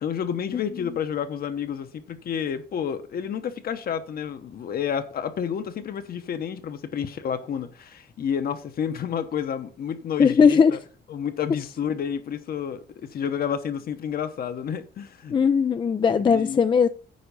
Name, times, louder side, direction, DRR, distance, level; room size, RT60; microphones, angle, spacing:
voice 1, 0.0-10.8 11.1-15.4 16.3-16.6, left 8 dB, 60° left, 1.1 m, -30 dB
voice 2, 10.2-10.8 15.3-16.9, left 6 dB, 25° left, 0.4 m, -18 dB
9.6 x 5.2 x 6.9 m
cardioid pair, 150°, 18 cm